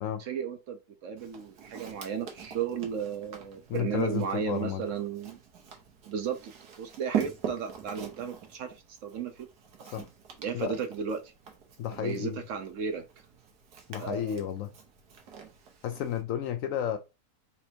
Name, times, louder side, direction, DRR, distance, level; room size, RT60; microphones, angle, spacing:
voice 1, 0.2-5.4 6.1-6.5 6.8-9.5 10.4-11.3 11.9-13.0 14.0-14.4, right 7 dB, 65° right, 0.9 m, -34 dB
Walk footsteps, 1.2-16.2, right 8 dB, 85° right, 1.5 m, -42 dB
voice 2, 3.7-4.8 9.9-10.1 10.5-10.8 11.8-12.4 13.9-14.7 15.8-17.0, left 10 dB, 70° left, 0.8 m, -32 dB
4.2 x 2.6 x 4.3 m
omnidirectional pair, 1.6 m